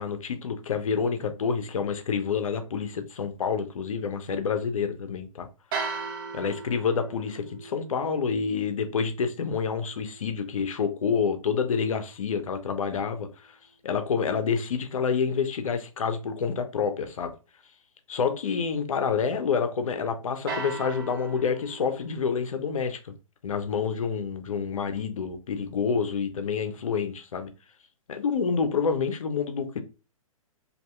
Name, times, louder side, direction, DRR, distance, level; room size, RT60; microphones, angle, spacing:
voice 1, 0.0-5.5 6.3-13.6 13.8-17.3 18.1-23.1 23.4-27.5 28.1-29.8, left 6 dB, 70° left, 0.6 m, -28 dB
sound 1, 5.7-11.8 20.5-22.4, right 4 dB, 40° right, 0.5 m, -39 dB
2.7 x 2.7 x 2.3 m
hypercardioid pair, 130°, 18 cm